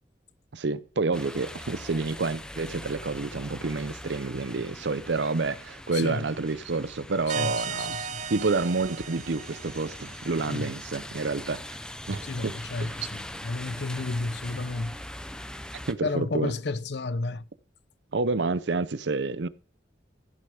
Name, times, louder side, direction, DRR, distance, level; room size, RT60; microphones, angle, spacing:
voice 1, 0.5-8.0 8.3-11.6 12.1-12.5 12.8-13.0 15.9-16.5 18.1-19.5, right 3 dB, 80° right, 0.7 m, -29 dB
sound 1, 1.1-15.9, left 1 dB, 5° left, 0.7 m, -42 dB
voice 2, 5.9-6.2 7.3-8.2 10.5-10.6 12.2-15.0 16.0-17.5, left 3 dB, 70° left, 0.7 m, -32 dB
sound 2, 7.3-10.7, right 5 dB, 40° right, 0.6 m, -36 dB
15.5 x 6.7 x 5.0 m
head